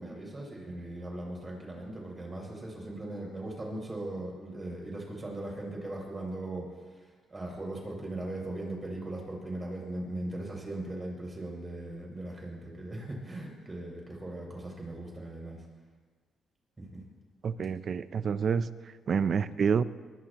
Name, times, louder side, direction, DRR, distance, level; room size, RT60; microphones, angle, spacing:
voice 1, 0.0-15.6 16.8-17.0, right 1 dB, 25° right, -1 dB, 6.9 m, -39 dB
voice 2, 17.4-18.7 19.1-19.8, right 6 dB, 50° right, 14 dB, 0.6 m, -28 dB
23.0 x 20.5 x 3.1 m, 1.4 s
cardioid pair, 90°, 0 cm